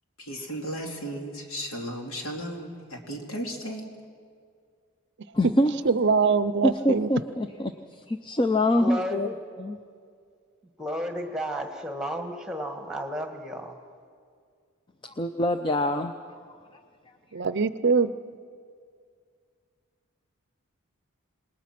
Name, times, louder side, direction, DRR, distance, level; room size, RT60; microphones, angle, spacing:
voice 1, 0.2-3.9, equal, 70° left, 1 dB, 2.7 m, -35 dB
voice 2, 5.3-5.7 6.6-9.3 9.6-9.8 15.0-16.4, left 1 dB, 20° left, 7 dB, 0.6 m, -25 dB
voice 3, 5.9-7.1 17.3-18.1, right 5 dB, 50° right, 14 dB, 0.6 m, -23 dB
voice 4, 8.8-9.4 10.8-13.8, equal, 5° right, 4 dB, 1.6 m, -33 dB
27.5 x 20.0 x 6.0 m, 2.1 s
head